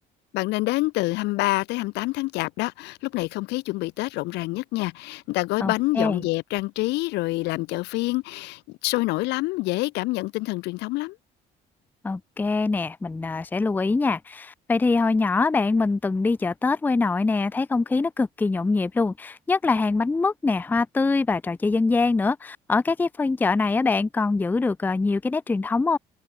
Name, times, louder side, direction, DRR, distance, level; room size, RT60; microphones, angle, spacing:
voice 1, 0.3-11.2, left 21 dB, 90° left, 1.1 m, -27 dB
voice 2, 5.6-6.3 12.0-26.0, left 3 dB, 10° left, 0.4 m, -23 dB
cardioid pair, 110°, 17 cm